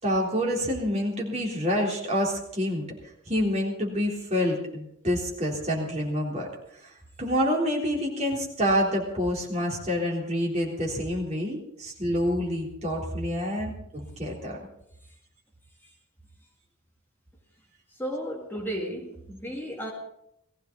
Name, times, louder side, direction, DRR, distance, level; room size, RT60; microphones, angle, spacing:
voice 1, 0.0-2.9 3.3-6.5 6.8-14.6, equal, 30° right, -2 dB, 3.7 m, -27 dB
voice 2, 18.0-19.9, equal, 10° left, -2 dB, 2.1 m, -33 dB
19.0 x 15.5 x 4.0 m, 0.77 s
head